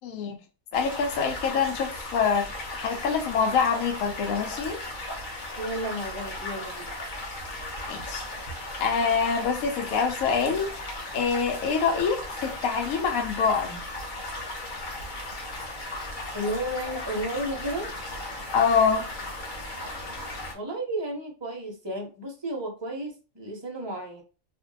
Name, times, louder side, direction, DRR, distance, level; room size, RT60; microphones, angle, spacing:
voice 1, 0.0-0.4 0.7-4.8 7.9-8.2 8.8-13.8 18.5-19.1, left 6 dB, 85° left, 1.0 m, -25 dB
sound 1, 0.7-20.5, left 1 dB, 45° left, 0.8 m, -36 dB
voice 2, 5.6-6.9 16.3-17.9 20.5-24.2, right 1 dB, 35° right, 0.4 m, -32 dB
2.5 x 2.2 x 3.8 m
omnidirectional pair, 1.4 m